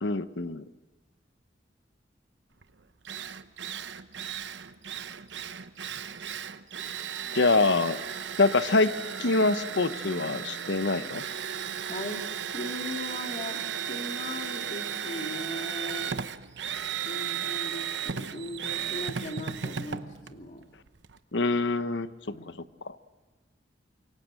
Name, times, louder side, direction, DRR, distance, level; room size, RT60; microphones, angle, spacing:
voice 1, 0.0-0.6 7.3-8.0 8.4-8.9 9.2-11.2 21.3-22.1 22.8-23.0, left 3 dB, 75° left, 13 dB, 0.9 m, -25 dB
Drill, 2.6-2.7 3.1-21.2, right 8 dB, 75° right, 0.9 m, -35 dB
voice 2, 11.8-12.2 12.5-13.6 13.9-16.2 17.1-20.6 22.2-22.5, left 1 dB, 45° left, 3 dB, 2.7 m, -38 dB
26.0 x 23.5 x 7.6 m, 1.2 s
head